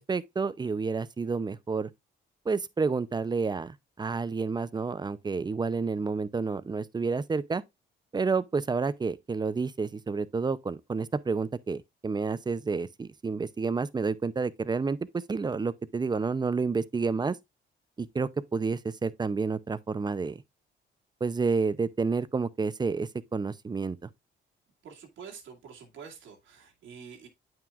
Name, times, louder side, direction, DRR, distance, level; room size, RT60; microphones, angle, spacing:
voice 1, 0.0-1.9 2.5-7.6 8.1-17.4 18.0-20.4 21.2-24.1, right 4 dB, 20° right, 0.6 m, -30 dB
voice 2, 24.8-27.3, right 6 dB, 85° right, 2.1 m, -47 dB
9.0 x 5.9 x 2.4 m
cardioid pair, 90°, 20 cm